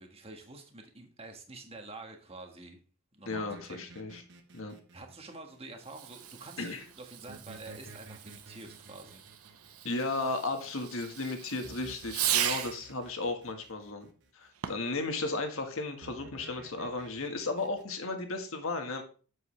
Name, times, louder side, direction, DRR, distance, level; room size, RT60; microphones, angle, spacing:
voice 1, 0.0-2.8 3.1-3.9 4.9-9.2 9.5-9.8, right 2 dB, 25° right, 4 dB, 1.5 m, -48 dB
voice 2, 3.2-4.2 4.5-4.7 6.6-6.8 9.8-14.1 14.3-19.0, left 3 dB, 65° left, 5 dB, 1.6 m, -34 dB
sound 1, 3.3-6.2 7.3-10.7 11.6-14.3 16.0-17.8, right 2 dB, 55° right, 1.2 m, -52 dB
Fireworks, 5.8-12.9 14.5-15.0, right 10 dB, 80° right, 0.9 m, -37 dB
8.1 x 7.5 x 3.3 m, 0.38 s
head